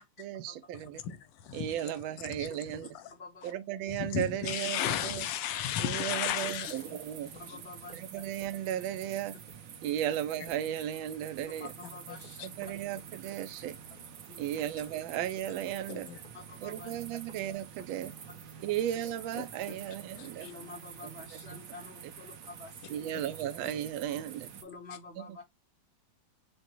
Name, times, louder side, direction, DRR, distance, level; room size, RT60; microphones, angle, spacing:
voice 1, 0.0-1.0 1.5-2.9 3.4-5.2 5.8-7.3 7.9-9.4 9.8-11.7 12.4-13.8 14.4-16.1 16.6-18.1 18.6-20.5 21.3-21.6 22.9-24.5 25.2-25.4, right 11 dB, 80° right, 1.3 m, -35 dB
voice 2, 0.7-3.1 3.4-3.5 3.9-7.6 11.8-12.5 15.9-16.2 19.3-19.6 20.2-20.5 23.1-23.2 23.6-23.8, left 10 dB, 75° left, 1.2 m, -36 dB
voice 3, 3.1-3.5 7.4-8.0 11.6-12.4 14.3-14.4 16.3-16.9 20.4-23.1 24.6-25.4, left 3 dB, 50° left, 0.8 m, -48 dB
sound 1, 5.1-24.8, right 1 dB, 20° right, 1.0 m, -60 dB
sound 2, 6.4-24.6, right 8 dB, 65° right, 0.8 m, -48 dB
6.4 x 2.1 x 2.9 m
omnidirectional pair, 2.1 m